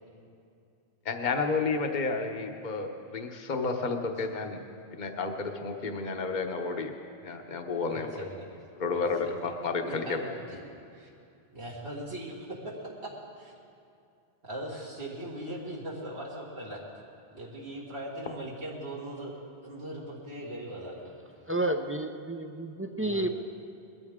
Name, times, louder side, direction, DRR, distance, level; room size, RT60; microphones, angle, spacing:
voice 1, 1.0-4.6 4.9-6.9 7.2-8.1 8.7-10.2, left 4 dB, 45° left, 5 dB, 1.1 m, -31 dB
voice 2, 7.8-8.5 8.9-9.5 9.8-10.6 10.9-11.1 11.5-12.8 13.4-13.5 14.4-16.8 17.3-19.3 19.6-21.1 23.0-23.3, right 1 dB, 70° right, -5 dB, 2.2 m, -40 dB
voice 3, 21.5-23.3, right 1 dB, 20° right, 5 dB, 0.4 m, -30 dB
21.5 x 13.5 x 3.6 m, 2.5 s
omnidirectional pair, 1.1 m